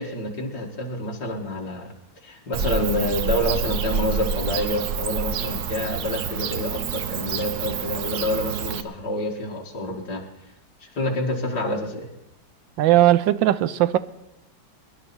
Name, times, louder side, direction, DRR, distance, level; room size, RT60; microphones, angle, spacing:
voice 1, 0.0-1.9 2.2-10.3 10.8-12.1, left 1 dB, 55° left, 0 dB, 2.8 m, -28 dB
Bird / Cricket, 2.5-8.8, right 6 dB, 60° right, 1.2 m, -28 dB
voice 2, 12.8-14.0, right 14 dB, 80° right, 14 dB, 1.4 m, -18 dB
22.0 x 11.0 x 4.4 m, 0.92 s
omnidirectional pair, 2.1 m